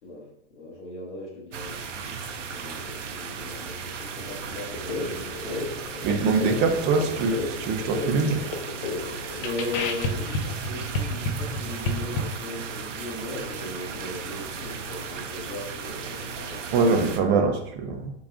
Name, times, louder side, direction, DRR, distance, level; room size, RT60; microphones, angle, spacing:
voice 1, 0.0-5.8 6.3-6.7 9.3-17.4, left 2 dB, 70° left, -2 dB, 1.2 m, -38 dB
sound 1, 1.5-17.2, right 5 dB, 85° right, 0.6 m, -36 dB
sound 2, 4.7-12.2, left 3 dB, 50° left, 0.6 m, -31 dB
voice 2, 6.0-8.4 16.7-18.1, right 4 dB, 30° right, 5 dB, 0.5 m, -23 dB
3.9 x 2.3 x 3.5 m, 0.75 s
hypercardioid pair, 110°, 36 cm